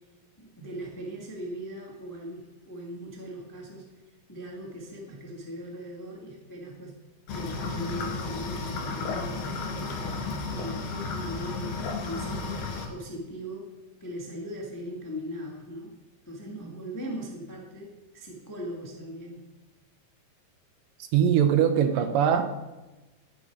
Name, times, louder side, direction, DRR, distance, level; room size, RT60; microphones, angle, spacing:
voice 1, 0.4-4.0 4.3-7.0 7.3-11.7 12.0-12.6 12.9-13.7 14.0-15.9 16.2-19.5, equal, 10° left, -1 dB, 0.9 m, -39 dB
sound 1, 7.3-12.9, left 3 dB, 70° left, 3.8 m, -33 dB
voice 2, 21.1-22.6, right 8 dB, 75° right, 8 dB, 2.2 m, -22 dB
17.5 x 8.2 x 4.8 m, 1.1 s
omnidirectional pair, 4.3 m